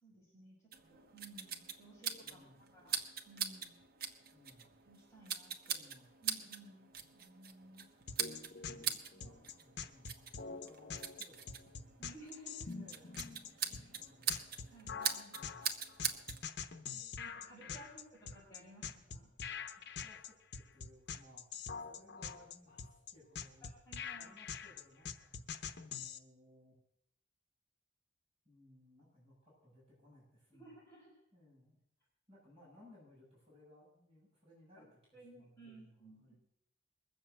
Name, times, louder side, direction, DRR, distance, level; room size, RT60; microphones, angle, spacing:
voice 1, 0.0-3.0 3.3-3.7 4.9-5.8 6.2-7.9 8.6-8.8 9.2-9.3 12.0-12.7 13.8-14.2 14.7-15.4 16.9-19.3 23.6-24.3 30.5-31.1 34.8-34.9 35.1-36.3, right 1 dB, 15° left, -5 dB, 5.4 m, -57 dB
sound 1, 0.7-16.4, right 7 dB, 55° right, 1.2 m, -43 dB
voice 2, 2.2-2.6 4.3-4.7 5.7-6.1 8.6-12.0 12.7-13.6 13.9-14.4 15.3-15.7 17.6-18.0 19.8-23.7 24.1-25.3 25.8-26.8 28.4-30.8 31.3-31.8 32.3-36.3, left 1 dB, 30° right, -6 dB, 7.2 m, -63 dB
sound 2, 8.1-26.2, left 6 dB, 65° left, 0.9 m, -45 dB
21.0 x 7.5 x 7.9 m, 0.75 s
head